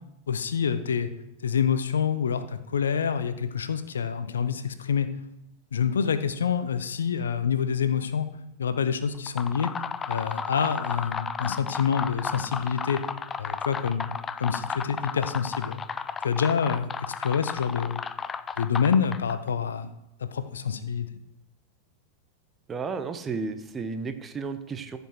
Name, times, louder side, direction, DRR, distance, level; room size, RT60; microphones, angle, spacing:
voice 1, 0.3-1.1 1.4-5.1 5.7-8.3 8.6-9.7 10.1-13.0 13.4-15.8 16.2-18.0 18.6-19.9 20.2-21.1, left 7 dB, 70° left, 12 dB, 0.6 m, -27 dB
sound 1, 9.1-19.5, left 6 dB, 20° left, 0.4 m, -34 dB
voice 2, 22.7-25.0, right 4 dB, 20° right, 9 dB, 0.9 m, -33 dB
14.5 x 5.3 x 4.6 m, 0.85 s
figure-of-eight pair, 90°, 0 cm